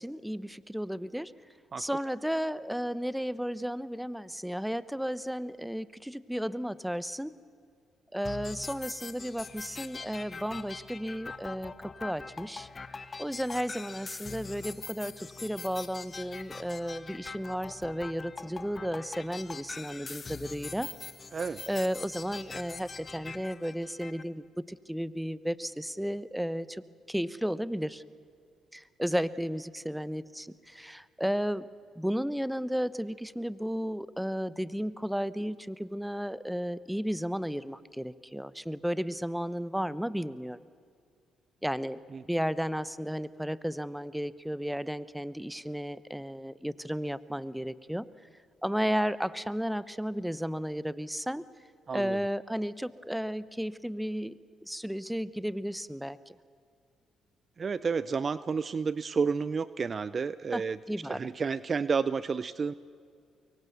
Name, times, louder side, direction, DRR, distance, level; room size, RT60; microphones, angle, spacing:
voice 1, 0.0-1.3 1.8-7.3 8.1-20.9 21.7-26.8 27.1-28.0 28.7-31.7 32.0-40.6 41.6-42.0 42.3-48.1 48.6-51.5 51.9-56.4 60.5-61.3, equal, 5° right, 17 dB, 0.9 m, -33 dB
sound 1, 8.2-24.2, left 4 dB, 35° left, 1.4 m, -43 dB
voice 2, 51.9-52.2 57.6-60.8 61.1-62.7, right 5 dB, 45° right, 16 dB, 0.6 m, -30 dB
25.0 x 23.0 x 6.9 m, 2.3 s
supercardioid pair, 60°, 0 cm